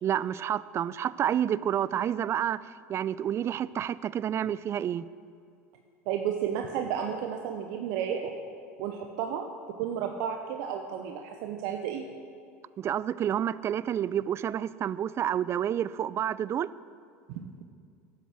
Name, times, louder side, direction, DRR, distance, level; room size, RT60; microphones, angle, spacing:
voice 1, 0.0-2.6 2.9-5.0 12.8-16.7, right 10 dB, 35° right, 19 dB, 0.4 m, -29 dB
voice 2, 6.1-8.3 8.8-9.4 9.8-12.1 17.3-17.5, right 8 dB, 60° right, 4 dB, 0.8 m, -32 dB
12.5 x 8.3 x 6.2 m, 2.3 s
hypercardioid pair, 80°, 8 cm